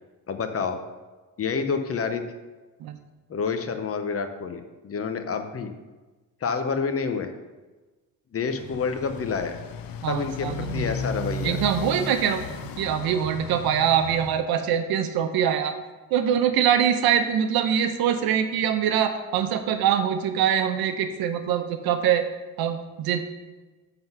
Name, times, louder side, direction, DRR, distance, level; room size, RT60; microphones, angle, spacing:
voice 1, 0.3-0.8 1.4-2.2 3.3-5.7 6.4-7.3 8.3-9.6 10.1-11.6, left 5 dB, 40° left, 7 dB, 0.8 m, -28 dB
Motorcycle, 8.4-14.4, left 4 dB, 70° left, 0.7 m, -35 dB
voice 2, 10.0-10.9 11.4-15.8 16.1-22.3 22.6-23.2, right 9 dB, 80° right, 8 dB, 0.8 m, -24 dB
7.5 x 3.9 x 5.9 m, 1.2 s
cardioid pair, 95°, 36 cm